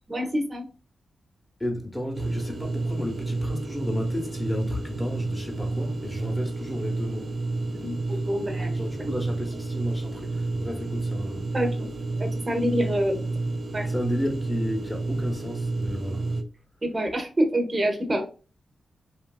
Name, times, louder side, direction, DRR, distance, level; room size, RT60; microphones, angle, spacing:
voice 1, 0.1-0.7 7.8-8.8 11.5-11.9 12.2-13.2 13.7-13.9 16.8-18.2, equal, 30° right, 0.8 m, -26 dB
voice 2, 1.6-7.4 8.1-8.2 8.7-11.5 13.9-16.2, left 1 dB, 10° left, 0.9 m, -33 dB
sound 1, 2.1-16.4, right 2 dB, 55° right, 0.4 m, -30 dB
3.1 x 2.4 x 2.3 m
cardioid pair, 75°, 0 cm